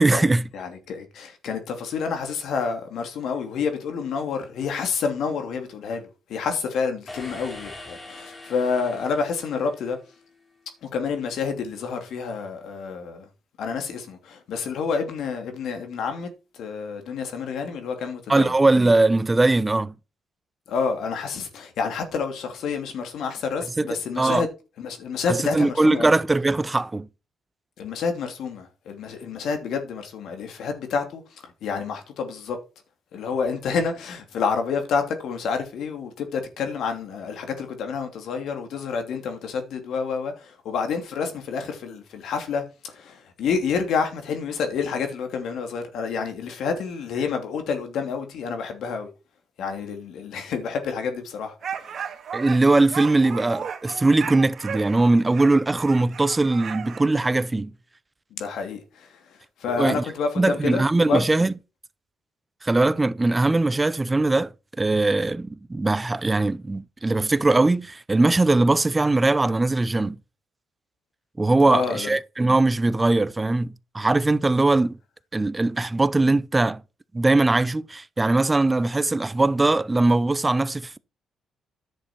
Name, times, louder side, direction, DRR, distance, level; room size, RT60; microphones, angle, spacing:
voice 1, 0.0-0.4 18.3-19.9 23.8-23.9 24.2-24.5 25.5-27.1 52.3-57.7 59.8-60.0 60.4-61.5 62.6-64.5 64.8-70.2 71.4-75.0 75.3-76.8 77.1-81.0, right 2 dB, 20° right, 0.6 m, -20 dB
voice 2, 0.5-10.0 10.8-13.3 13.6-18.5 20.7-24.5 24.8-26.2 27.8-32.6 33.1-49.1 49.6-52.0 58.3-61.2 71.6-72.2, left 5 dB, 75° left, 2.8 m, -29 dB
sound 1, 7.1-10.2, left 2 dB, 30° left, 3.3 m, -42 dB
sound 2, 51.6-57.0, right 7 dB, 55° right, 1.9 m, -35 dB
10.5 x 6.7 x 4.5 m
cardioid pair, 90°, 0 cm